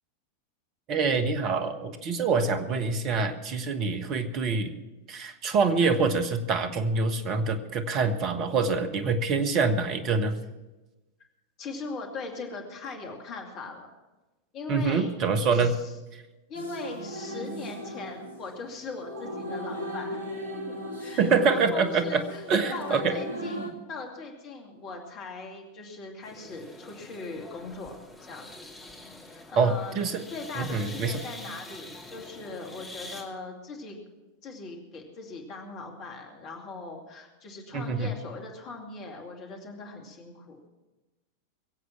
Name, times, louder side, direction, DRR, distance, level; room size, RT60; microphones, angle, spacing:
voice 1, 0.9-4.7 5.1-10.4 14.7-15.8 21.2-22.2 22.5-23.1 29.6-30.2 30.5-31.2 37.7-38.1, right 4 dB, 35° right, 8 dB, 1.3 m, -25 dB
voice 2, 11.6-13.9 14.5-15.1 15.5-15.9 16.5-20.2 20.7-28.5 29.3-30.0 30.3-34.0 34.4-40.7, left 3 dB, 35° left, 2 dB, 2.5 m, -40 dB
sound 1, 16.5-23.7, equal, 65° right, 2.1 m, -37 dB
sound 2, 26.2-33.2, left 2 dB, 10° left, 2.6 m, -45 dB
22.5 x 8.1 x 6.0 m, 1.1 s
figure-of-eight pair, 90°, 0 cm